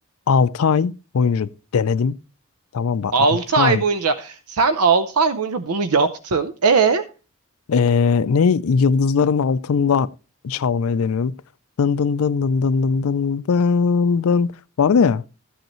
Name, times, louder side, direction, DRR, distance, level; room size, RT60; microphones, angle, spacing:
voice 1, 0.3-2.2 2.7-3.3 3.6-3.8 7.7-10.1 10.4-11.4 11.8-14.5 14.8-15.2, left 5 dB, 75° left, 0.4 m, -19 dB
voice 2, 3.1-7.0, right 5 dB, 90° right, 0.6 m, -19 dB
14.0 x 7.9 x 3.0 m
head